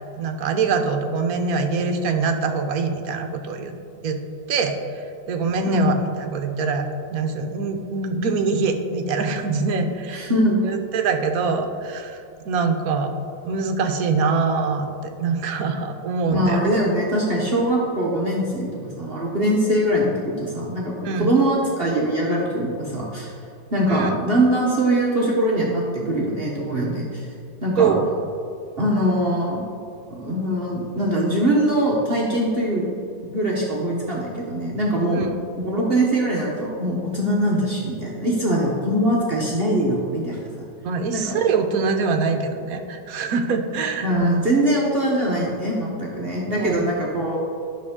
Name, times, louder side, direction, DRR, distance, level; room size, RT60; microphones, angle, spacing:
voice 1, 0.2-3.7 4.0-4.2 4.5-10.3 10.6-12.2 12.5-13.1 13.4-16.6 21.0-21.3 23.9-24.1 27.8-28.1 35.1-35.3 40.8-44.1 46.5-46.9, right 4 dB, 65° right, 6 dB, 1.1 m, -24 dB
voice 2, 10.1-10.6 16.3-20.9 21.2-23.3 23.7-27.3 27.6-27.9 28.8-29.6 30.1-32.9 33.3-35.3 35.5-40.7 41.1-41.4 44.0-47.4, right 1 dB, 40° right, -4 dB, 1.0 m, -22 dB
10.5 x 6.2 x 3.6 m, 2.6 s
omnidirectional pair, 1.8 m